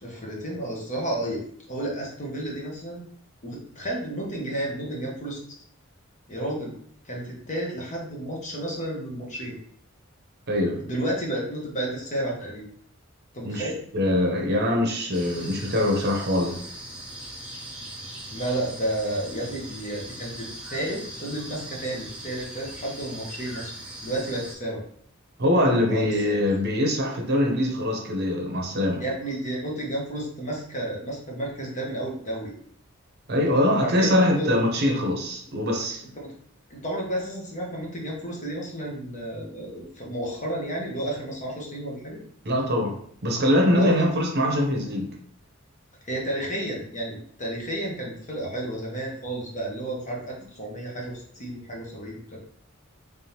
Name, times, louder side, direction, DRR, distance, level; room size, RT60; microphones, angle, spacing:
voice 1, 0.0-1.4 1.7-3.0 3.4-5.4 6.3-6.7 7.0-9.6 10.8-12.7 13.3-13.8 18.3-23.7 24.0-24.8 25.9-26.3 29.0-32.5 33.8-34.5 36.2-36.3 36.7-42.2 43.7-44.0 46.0-52.4, right 1 dB, 40° left, -2 dB, 1.1 m, -31 dB
voice 2, 10.5-10.8 13.4-16.6 25.4-29.0 33.3-36.0 42.4-45.2, left 1 dB, 55° right, 1 dB, 0.8 m, -23 dB
sound 1, 15.1-24.5, right 1 dB, 5° right, 0.8 m, -40 dB
3.5 x 3.4 x 2.9 m, 0.62 s
head